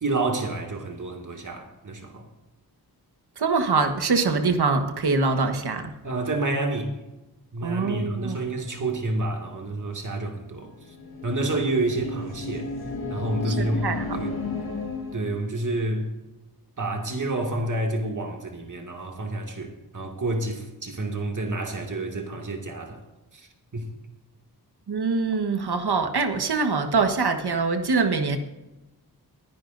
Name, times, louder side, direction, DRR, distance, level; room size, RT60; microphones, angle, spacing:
voice 1, 0.0-2.3 6.0-6.9 7.5-11.0 11.2-12.7 13.1-14.4 15.1-16.1 16.8-23.0 23.3-23.9, right 2 dB, 50° right, 2 dB, 2.3 m, -29 dB
voice 2, 3.4-5.9 7.6-8.4 13.4-14.2 24.9-28.4, right 4 dB, 80° right, 6 dB, 1.5 m, -24 dB
sound 1, 10.8-15.4, left 3 dB, 70° left, 1.9 m, -33 dB
23.5 x 10.5 x 2.6 m, 1.0 s
wide cardioid pair, 105°, 38 cm